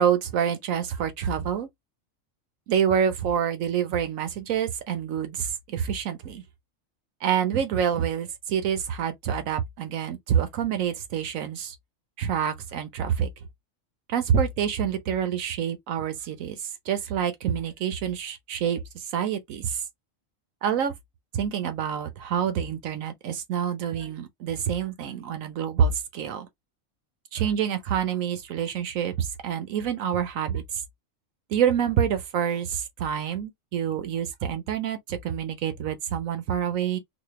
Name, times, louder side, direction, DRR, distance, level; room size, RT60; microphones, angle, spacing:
voice 1, 0.0-1.7 2.7-6.4 7.2-11.7 12.2-13.3 14.1-16.6 16.9-19.8 20.6-20.9 21.3-26.5 27.3-30.6 31.5-37.0, right 8 dB, 80° right, 1.3 m, -27 dB
4.2 x 2.4 x 3.1 m
omnidirectional pair, 1.4 m